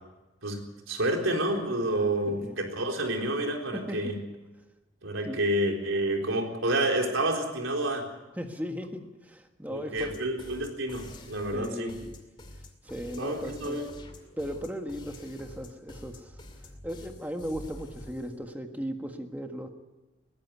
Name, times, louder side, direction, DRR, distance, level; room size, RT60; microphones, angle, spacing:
voice 1, 0.4-4.2 5.0-8.1 9.7-11.9 13.1-13.9, right 1 dB, 85° right, 2 dB, 4.1 m, -29 dB
voice 2, 2.3-2.6 3.7-4.1 5.2-5.4 8.4-10.1 11.5-12.2 12.8-13.8 14.4-16.4 16.8-19.7, equal, 10° right, 5 dB, 1.6 m, -37 dB
sound 1, 10.0-18.4, left 1 dB, 25° left, 2.5 m, -47 dB
20.5 x 15.5 x 8.4 m, 1.1 s
head